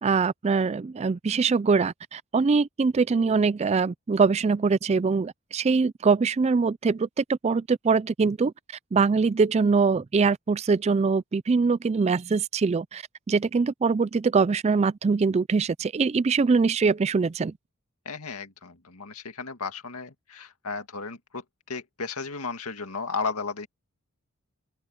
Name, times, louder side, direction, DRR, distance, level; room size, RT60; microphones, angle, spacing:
voice 1, 0.0-8.5 8.9-17.5, right 4 dB, 30° right, 0.3 m, -23 dB
voice 2, 18.1-23.7, left 4 dB, 80° left, 2.1 m, -34 dB
open air
head